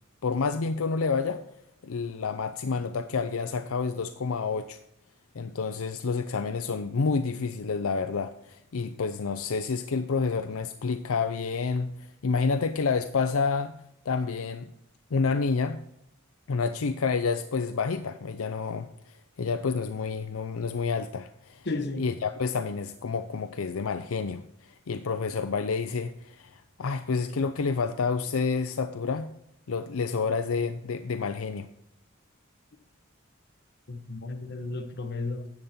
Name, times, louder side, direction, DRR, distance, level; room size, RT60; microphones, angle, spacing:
voice 1, 0.2-1.4 1.8-4.8 5.3-13.8 14.1-14.7 15.1-15.8 16.5-21.7 22.0-29.3 29.7-31.7, left 4 dB, 80° left, 0.5 m, -29 dB
voice 2, 21.6-22.1 33.9-35.5, left 3 dB, 55° left, 1.1 m, -33 dB
10.5 x 8.0 x 4.3 m
head